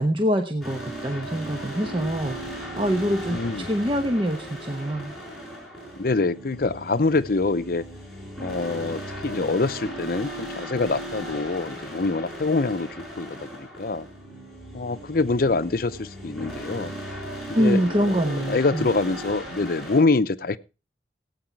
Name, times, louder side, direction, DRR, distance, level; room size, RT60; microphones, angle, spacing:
voice 1, 0.0-5.1 17.5-18.9, equal, 30° right, 5 dB, 1.0 m, -25 dB
sound 1, 0.6-20.0, right 1 dB, ahead, 6.9 m, -37 dB
voice 2, 3.3-3.7 6.0-7.8 8.4-12.9 13.2-14.1 14.7-16.9 17.6-17.8 18.5-20.6, left 3 dB, 55° left, 13 dB, 0.7 m, -25 dB
16.5 x 8.8 x 4.5 m, 0.31 s
head